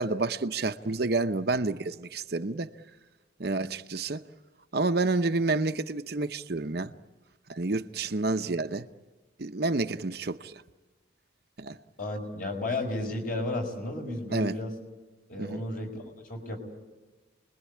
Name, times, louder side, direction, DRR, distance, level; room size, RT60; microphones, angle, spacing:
voice 1, 0.0-2.7 3.4-4.2 4.7-6.9 7.5-8.9 9.4-10.6 11.6-11.8 14.3-14.5 15.4-15.6, right 3 dB, 55° right, 0.8 m, -29 dB
voice 2, 12.0-14.8 15.3-16.0 16.3-16.6, left 2 dB, 45° left, 5.4 m, -33 dB
30.0 x 21.5 x 8.5 m
head